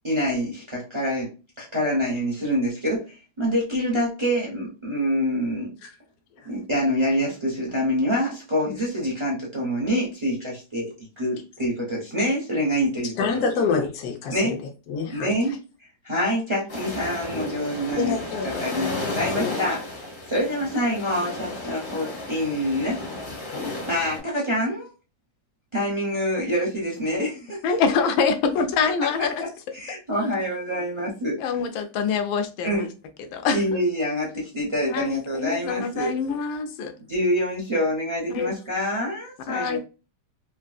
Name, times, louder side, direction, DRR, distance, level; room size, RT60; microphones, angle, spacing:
voice 1, 0.0-1.3 1.6-5.7 6.4-13.4 14.3-14.6 15.1-15.5 16.0-18.1 18.4-19.8 20.3-23.0 23.9-24.9 25.7-27.6 29.7-31.4 32.6-32.9 33.5-36.1 37.1-39.8, equal, 45° right, 0.3 m, -26 dB
voice 2, 13.2-14.3 14.9-15.3 18.0-19.6, left 5 dB, 60° left, 1.1 m, -27 dB
sound 1, 16.7-24.2, left 2 dB, 40° left, 1.7 m, -33 dB
voice 3, 27.6-29.3 31.4-32.9 33.2-33.6 34.8-36.9 38.3-38.5 39.5-39.8, left 5 dB, 90° left, 1.4 m, -25 dB
3.8 x 2.5 x 2.3 m
omnidirectional pair, 2.1 m